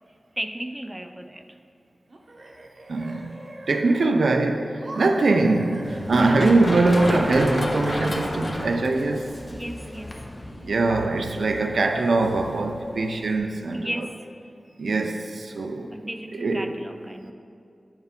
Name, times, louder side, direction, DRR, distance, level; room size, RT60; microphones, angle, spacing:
voice 1, 0.4-1.6 9.5-10.3 13.7-14.3 15.9-17.3, right 1 dB, 15° right, 7 dB, 0.4 m, -34 dB
sound 1, 2.1-4.3 4.8-8.7, right 1 dB, 60° right, 0.8 m, -41 dB
voice 2, 2.9-3.3 3.7-9.4 10.6-14.1 14.8-15.9 16.3-16.7, right 3 dB, 85° right, 5 dB, 0.4 m, -22 dB
Run, 5.8-13.4, left 1 dB, 40° left, 0.6 m, -31 dB
6.8 x 4.4 x 3.6 m, 2.5 s
cardioid pair, 55°, 0 cm